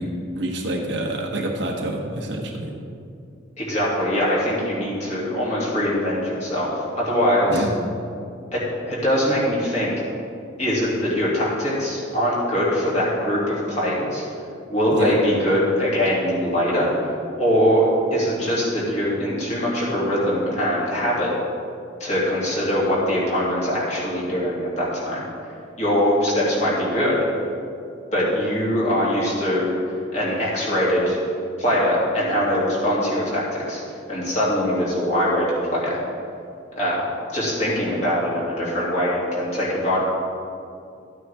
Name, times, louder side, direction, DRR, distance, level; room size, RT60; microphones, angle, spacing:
voice 1, 0.0-2.7 7.5-7.7 14.9-15.2, right 1 dB, 60° right, 1 dB, 1.1 m, -27 dB
voice 2, 3.6-6.7 6.9-7.6 8.5-9.9 10.6-14.2 14.7-16.9 17.4-21.3 22.0-25.2 25.8-27.2 28.1-29.8 30.1-31.2 31.6-33.8 34.1-36.0 36.8-40.0, equal, 35° left, -7 dB, 2.8 m, -22 dB
13.0 x 8.9 x 3.6 m, 2.5 s
head